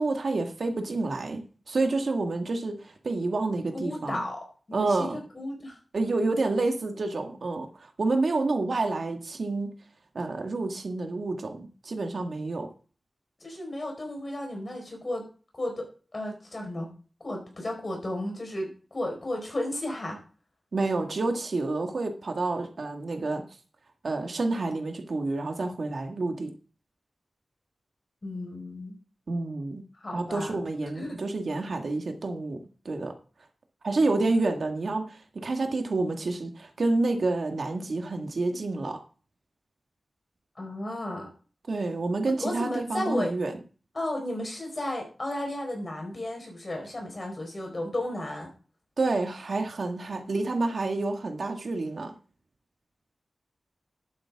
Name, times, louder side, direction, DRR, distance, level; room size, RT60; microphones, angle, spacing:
voice 1, 0.0-4.2 4.7-5.2 5.9-9.7 10.1-12.7 20.7-23.4 24.0-26.5 29.3-29.8 30.1-33.2 33.8-39.0 41.7-43.5 49.0-52.1, right 3 dB, 65° right, 4 dB, 1.8 m, -29 dB
voice 2, 3.7-4.4 4.7-5.8 13.4-15.3 15.5-15.9 16.1-16.9 17.2-20.2 28.2-29.0 29.9-30.6 31.0-31.2 40.6-41.3 42.4-43.3 43.9-48.5, left 1 dB, 40° left, 2 dB, 4.7 m, -33 dB
11.5 x 9.3 x 3.6 m, 0.37 s
wide cardioid pair, 110°, 0 cm